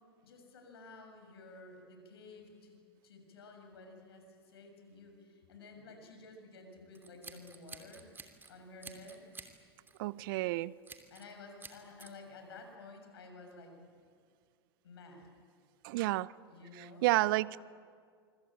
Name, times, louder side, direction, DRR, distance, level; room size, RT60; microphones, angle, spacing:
voice 1, 0.2-2.8 3.0-8.1 8.5-9.3 11.1-13.8 14.8-15.3 16.5-17.0 17.6-17.7, left 3 dB, 75° left, 4 dB, 6.7 m, -52 dB
Scissors, 6.9-8.5 8.8-9.5 9.9-10.1 10.8-11.3 11.6-12.1, right 4 dB, 15° right, 2.9 m, -50 dB
voice 2, 10.0-10.7 15.8-16.3 16.8-17.6, right 19 dB, 60° right, 21 dB, 0.7 m, -30 dB
25.5 x 25.0 x 8.8 m, 2.1 s
hypercardioid pair, 95°, 13 cm